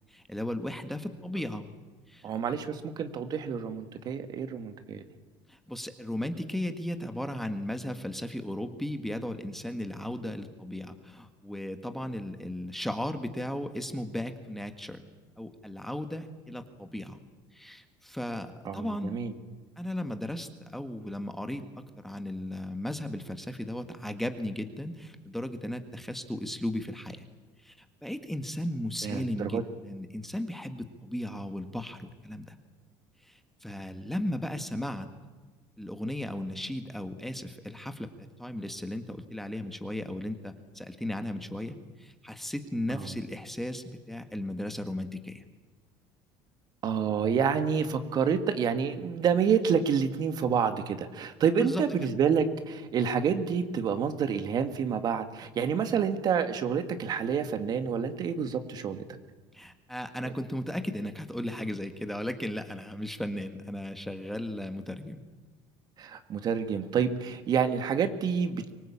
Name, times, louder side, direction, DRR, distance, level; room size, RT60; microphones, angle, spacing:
voice 1, 0.1-1.7 2.1-2.3 5.5-15.0 15.4-17.2 17.5-19.2 19.8-21.6 22.0-27.2 27.6-32.6 33.2-35.1 35.8-45.4 51.6-52.1 59.5-65.2, left 1 dB, 5° left, 8 dB, 1.7 m, -36 dB
voice 2, 2.2-5.0 18.7-19.3 29.0-29.6 42.9-43.1 46.8-59.1 60.2-60.3 66.0-68.7, right 7 dB, 45° right, 9 dB, 1.9 m, -28 dB
24.5 x 18.5 x 8.7 m, 1.3 s
cardioid pair, 120°, 10 cm